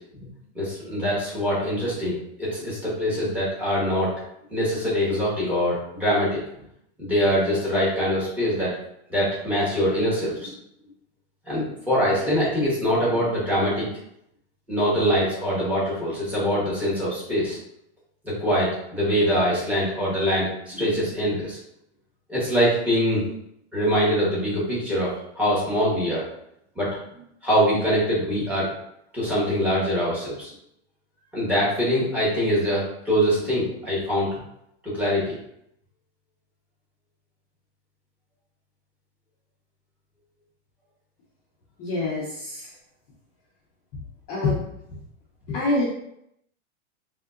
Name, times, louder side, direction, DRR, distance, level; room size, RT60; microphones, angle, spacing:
voice 1, 0.5-4.1 4.5-6.4 7.0-8.7 9.1-10.5 11.5-13.9 14.7-17.6 18.2-21.6 22.3-23.2 23.7-25.1 25.4-26.2 26.8-28.7 29.1-30.5 31.3-34.3 34.8-35.3, equal, 5° right, -8 dB, 0.9 m, -23 dB
voice 2, 41.8-42.6 44.3-44.6 44.9-45.0 45.5-45.8, left 2 dB, 20° left, -7 dB, 0.4 m, -25 dB
3.5 x 2.7 x 2.4 m, 0.77 s
supercardioid pair, 165°, 34 cm